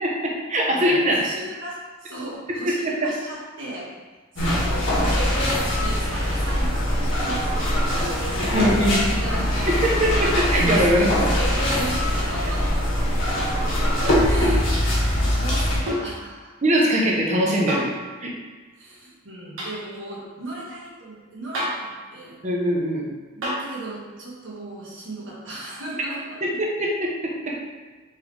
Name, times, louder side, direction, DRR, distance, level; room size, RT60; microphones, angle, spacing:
voice 1, 0.0-1.2 2.7-2.9 8.4-9.1 9.7-11.1 16.6-17.9 18.2-18.3 22.4-23.1 26.6-26.9 27.2-27.6, equal, 35° right, -2 dB, 0.8 m, -22 dB
voice 2, 0.7-3.9 4.3-5.4 5.7-10.4 10.7-12.8 14.0-16.5 18.7-22.4 23.3-26.4, right 1 dB, 65° right, -6 dB, 1.4 m, -37 dB
sound 1, 4.4-15.8, equal, 70° left, 1.3 m, -22 dB
sound 2, 14.0-14.3 15.9-16.2 17.7-18.0 19.6-19.8 21.5-21.9 23.4-23.7 25.5-25.6, equal, 85° right, 1.4 m, -29 dB
4.5 x 3.5 x 3.3 m, 1.3 s
head